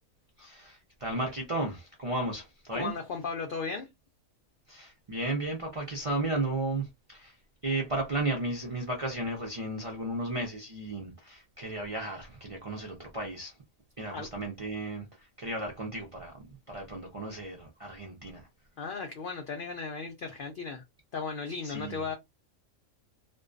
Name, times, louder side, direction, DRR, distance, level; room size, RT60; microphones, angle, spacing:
voice 1, 0.4-2.9 4.7-7.3 7.6-13.5 14.0-15.1 15.4-18.4 21.6-22.0, right 2 dB, 45° right, 0.4 m, -34 dB
voice 2, 2.7-3.9 14.1-14.3 18.8-20.8 21.1-22.1, left 5 dB, 80° left, 0.4 m, -36 dB
2.5 x 2.2 x 2.4 m
omnidirectional pair, 1.5 m